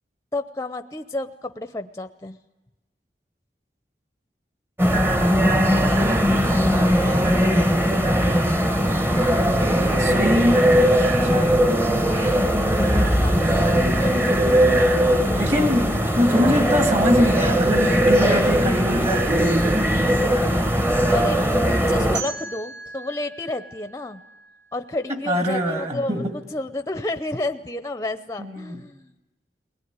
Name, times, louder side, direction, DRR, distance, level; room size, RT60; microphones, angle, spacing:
voice 1, 0.3-2.4 12.0-12.6 12.9-13.4 13.9-14.4 21.1-24.2 24.7-29.1, left 2 dB, 15° left, 10 dB, 0.7 m, -32 dB
sound 1, 4.8-22.2, equal, 15° right, 1.0 m, -19 dB
voice 2, 6.0-7.6 10.0-10.7 11.2-11.6 15.2-19.6 25.1-26.3 28.4-28.8, equal, 40° right, 5 dB, 2.3 m, -24 dB
sound 2, 22.1-25.1, right 4 dB, 85° right, 6.5 m, -38 dB
21.0 x 19.0 x 9.6 m, 1.1 s
head